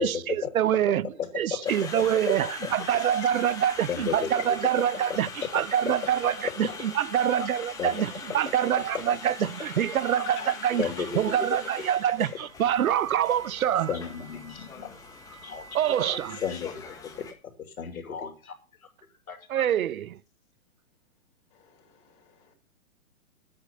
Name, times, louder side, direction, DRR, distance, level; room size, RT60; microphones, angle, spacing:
voice 1, 0.0-10.9 11.1-13.9 15.7-16.4 19.5-20.2, right 10 dB, 80° right, 0.6 m, -26 dB
voice 2, 1.5-1.9 2.4-2.8 3.9-4.3 6.4-6.8 7.8-8.0 9.4-9.5 10.1-10.5 10.8-11.2 13.8-14.9 15.4-15.6 16.1-16.7 17.2-17.3 17.8-18.6 19.3-19.7, left 7 dB, 80° left, 2.9 m, -33 dB
Conversation, 1.7-17.3, left 4 dB, 10° left, 1.6 m, -42 dB
voice 3, 10.3-10.8 21.5-22.5, left 8 dB, 35° left, 4.5 m, -46 dB
11.0 x 8.7 x 5.3 m
hypercardioid pair, 150°, 42 cm